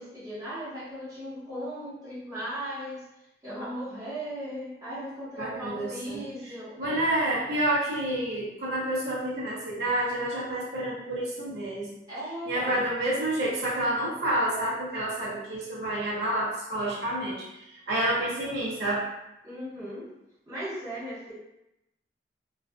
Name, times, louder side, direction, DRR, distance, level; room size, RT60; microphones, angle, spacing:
voice 1, 0.0-3.0 3.4-7.1 12.1-12.8 19.4-20.1 20.5-21.3, equal, 20° right, -13 dB, 1.1 m, -37 dB
voice 2, 5.4-6.2 6.8-11.9 12.5-17.4 17.9-19.1, right 1 dB, 70° right, -7 dB, 0.7 m, -29 dB
2.4 x 2.3 x 2.3 m, 0.87 s
head